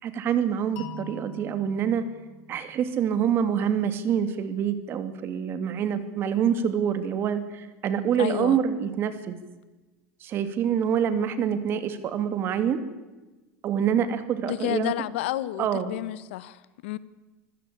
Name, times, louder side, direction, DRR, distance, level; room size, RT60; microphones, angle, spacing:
voice 1, 0.0-2.0 2.5-9.4 10.2-12.8 13.6-14.9 15.6-15.9, right 8 dB, 40° right, 2.6 m, -26 dB
sound 1, 0.8-3.7, left 5 dB, 60° left, 3.2 m, -45 dB
voice 2, 8.2-8.6 14.4-17.0, left 15 dB, 85° left, 1.3 m, -30 dB
25.5 x 16.0 x 8.5 m
supercardioid pair, 145°, 6 cm